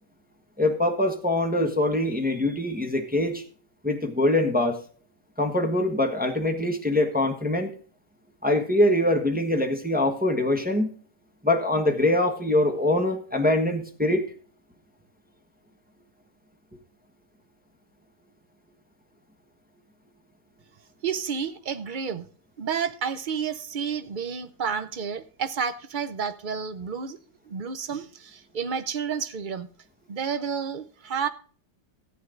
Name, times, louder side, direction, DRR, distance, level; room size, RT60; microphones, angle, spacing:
voice 1, 0.6-3.4 3.8-4.8 5.4-7.7 8.4-10.9 11.4-14.2, left 1 dB, 5° right, 1.1 m, -23 dB
voice 2, 21.0-22.3 22.6-27.2 27.5-29.7 30.1-31.3, right 6 dB, 70° right, 0.4 m, -30 dB
14.5 x 8.6 x 3.8 m
omnidirectional pair, 1.8 m